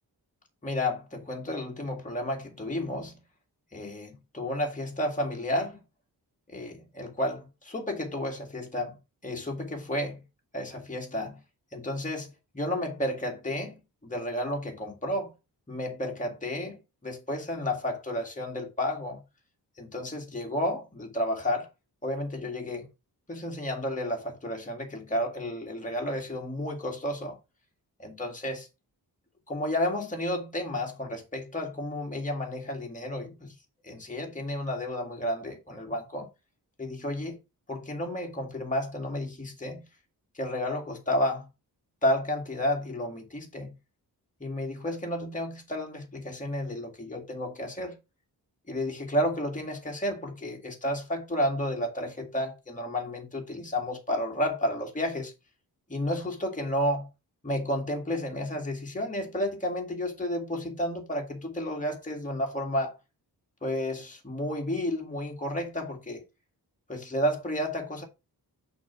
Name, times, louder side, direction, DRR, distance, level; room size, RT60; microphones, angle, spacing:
voice 1, 0.6-3.2 3.7-5.8 6.5-9.0 9.2-10.2 10.5-11.4 11.7-12.3 12.5-15.3 15.7-19.2 19.8-21.7 22.0-22.9 23.3-27.4 28.0-28.7 29.5-33.5 33.8-36.3 36.8-37.4 37.7-39.8 40.3-41.5 42.0-43.7 44.4-48.0 48.7-55.3 55.9-57.1 57.4-63.0 63.6-66.2 66.9-68.0, left 1 dB, 20° left, 1.9 m, -31 dB
6.2 x 3.5 x 5.8 m
wide cardioid pair, 105°, 39 cm